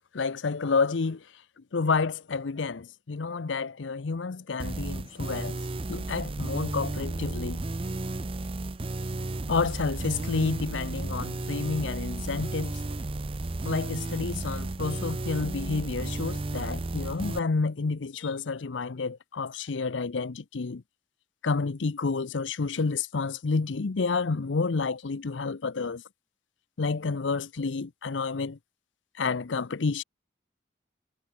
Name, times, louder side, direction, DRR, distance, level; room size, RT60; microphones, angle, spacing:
voice 1, 0.1-1.2 1.6-5.6 5.9-7.6 9.5-12.8 13.6-20.8 21.4-26.0 26.8-28.6 29.2-30.0, left 4 dB, 85° left, 0.7 m, -29 dB
sound 1, 4.6-17.4, right 2 dB, 30° right, 0.6 m, -33 dB
head